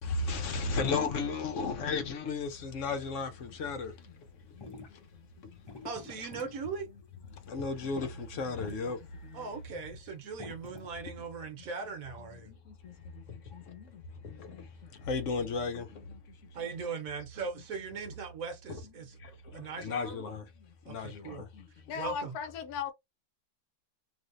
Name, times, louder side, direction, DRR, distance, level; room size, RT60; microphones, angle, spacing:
voice 1, 0.0-5.7 7.3-9.5 12.3-16.5 17.4-17.5 18.7-18.8 19.2-21.7, left 4 dB, 60° left, 1.0 m, -36 dB
sound 1, 3.1-10.9, left 3 dB, 30° left, 0.5 m, -51 dB
voice 2, 5.8-6.9 9.3-12.5 16.5-19.2 19.5-20.3 20.8-21.4 21.9-22.3, right 5 dB, 65° right, 1.2 m, -39 dB
voice 3, 21.9-22.9, left 7 dB, 80° left, 1.1 m, -36 dB
3.4 x 2.7 x 2.5 m
omnidirectional pair, 1.6 m